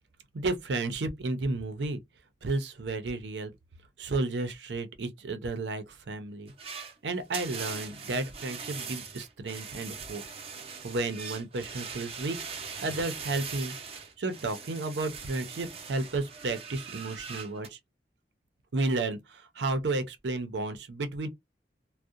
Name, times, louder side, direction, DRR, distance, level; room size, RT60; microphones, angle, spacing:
voice 1, 0.3-2.0 2.4-3.5 4.0-6.5 7.0-10.2 10.8-12.4 12.8-17.8 18.7-21.3, right 2 dB, 80° right, 0.6 m, -32 dB
sound 1, 6.5-17.7, right 5 dB, 35° right, 0.6 m, -41 dB
2.6 x 2.1 x 2.4 m
head